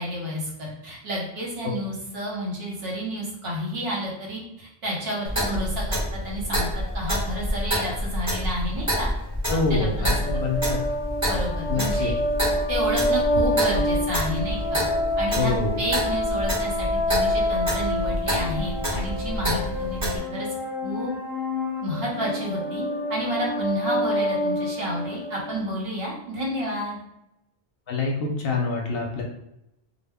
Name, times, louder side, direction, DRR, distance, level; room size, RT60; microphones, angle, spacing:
voice 1, 0.0-6.7 6.9-9.1 9.7-10.1 11.2-12.1 12.7-14.8 15.2-20.5 20.8-21.1 21.8-22.8 23.1-27.0, equal, 65° right, -3 dB, 1.0 m, -30 dB
Clock, 5.3-20.2, equal, 15° right, 0.9 m, -28 dB
voice 2, 9.5-10.8 11.7-12.1 15.4-15.8 27.9-29.2, left 3 dB, 65° left, 0 dB, 0.7 m, -26 dB
sound 1, 10.1-25.6, left 1 dB, 35° left, 0.8 m, -27 dB
2.1 x 2.0 x 3.4 m, 0.85 s
omnidirectional pair, 1.1 m